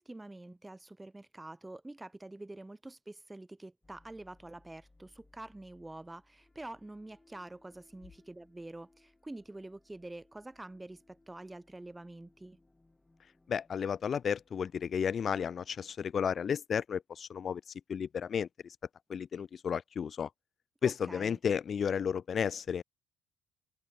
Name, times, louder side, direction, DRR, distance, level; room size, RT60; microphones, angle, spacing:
voice 1, 0.0-12.6 20.8-21.4, right 2 dB, 15° right, 1.6 m, -47 dB
sound 1, 3.8-15.6, left 2 dB, 20° left, 6.3 m, -67 dB
voice 2, 13.5-17.6 17.9-18.5 19.1-20.3 20.8-22.8, left 7 dB, 50° left, 0.8 m, -32 dB
hypercardioid pair, 55°, 0 cm